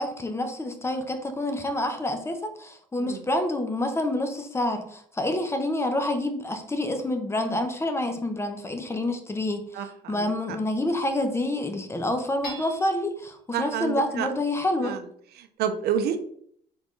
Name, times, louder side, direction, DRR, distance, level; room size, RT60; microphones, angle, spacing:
voice 1, 0.0-14.9, left 1 dB, 15° left, 6 dB, 0.6 m, -28 dB
Hammer / Chink clink, 12.4-13.2, right 1 dB, 80° left, 1.8 m, -41 dB
voice 2, 13.5-14.3 14.8-15.0 15.4-16.2, right 8 dB, 70° right, 8 dB, 0.5 m, -28 dB
4.2 x 3.9 x 3.1 m, 0.64 s
cardioid pair, 110°, 17 cm